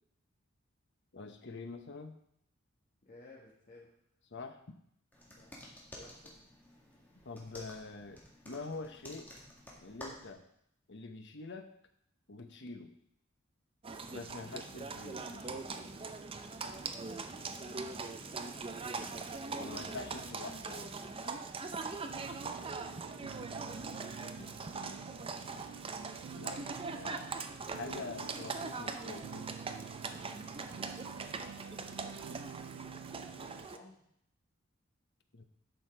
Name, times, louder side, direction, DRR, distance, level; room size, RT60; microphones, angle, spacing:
voice 1, 1.1-2.2 4.3-4.8 7.2-8.2 8.4-9.3 9.8-10.4 10.9-11.7 12.3-13.0 14.1-15.9 19.5-20.9 26.3-27.3 27.6-29.5 35.3-35.4, left 3 dB, 60° left, 6 dB, 1.0 m, -45 dB
voice 2, 3.0-4.0 5.4-5.6 5.9-6.4 23.1-24.6 33.0-34.0, left 2 dB, 40° left, -5 dB, 1.8 m, -57 dB
sound 1, 5.1-10.3, left 1 dB, 10° left, 2.1 m, -52 dB
Livestock farm animals working animals, 13.8-33.8, right 4 dB, 25° right, 0.6 m, -41 dB
sound 2, 22.1-33.7, right 7 dB, 70° right, 0.3 m, -49 dB
11.0 x 6.4 x 4.6 m, 0.72 s
head